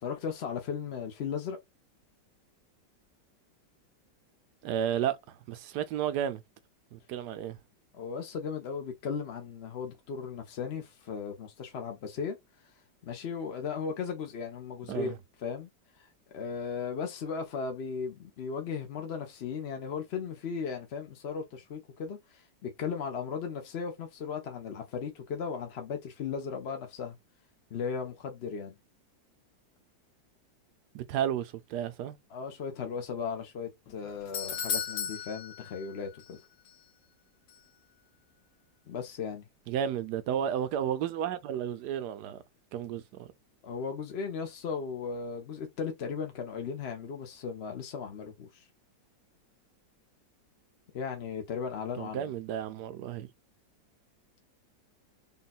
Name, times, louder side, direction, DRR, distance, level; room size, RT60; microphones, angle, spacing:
voice 1, 0.0-1.6 7.9-12.4 13.0-15.1 15.4-15.7 16.0-16.1 16.3-27.2 27.7-28.7 32.3-36.4 38.9-39.4 43.6-48.6 50.9-52.3, left 6 dB, 55° left, 0.7 m, -36 dB
voice 2, 4.6-6.4 6.9-7.6 14.9-15.2 30.9-32.2 39.7-42.4 42.7-43.3 51.9-53.3, right 9 dB, 70° right, 1.1 m, -32 dB
Doorbell, 33.9-36.4 36.7-36.8 37.5-37.6, left 7 dB, 75° left, 1.6 m, -36 dB
3.8 x 2.3 x 4.1 m
omnidirectional pair, 2.0 m